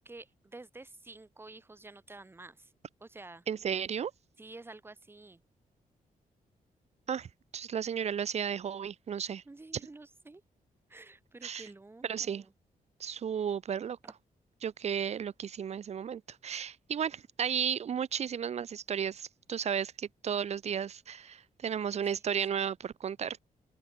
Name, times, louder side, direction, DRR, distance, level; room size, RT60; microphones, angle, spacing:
voice 1, 0.0-2.7 3.0-3.5 4.4-5.4 9.5-10.4 10.9-12.5 14.0-14.1 21.7-22.2, right 2 dB, 15° right, 1.9 m, -50 dB
voice 2, 3.5-4.1 7.1-7.3 7.5-9.4 11.4-11.7 12.0-12.4 13.0-14.0 14.6-23.4, right 8 dB, 45° right, 0.7 m, -34 dB
open air
wide cardioid pair, 170°, 15 cm